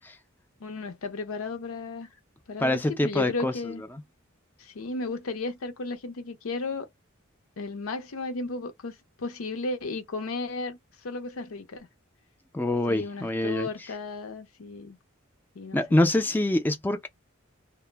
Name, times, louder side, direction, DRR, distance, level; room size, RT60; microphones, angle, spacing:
voice 1, 0.6-2.1 2.5-3.8 4.6-6.9 7.6-11.9 12.9-15.0 15.5-16.0, left 3 dB, 90° left, 0.6 m, -34 dB
voice 2, 2.6-3.5 12.5-13.7 15.7-17.1, left 1 dB, 10° left, 0.3 m, -25 dB
2.0 x 2.0 x 3.2 m
head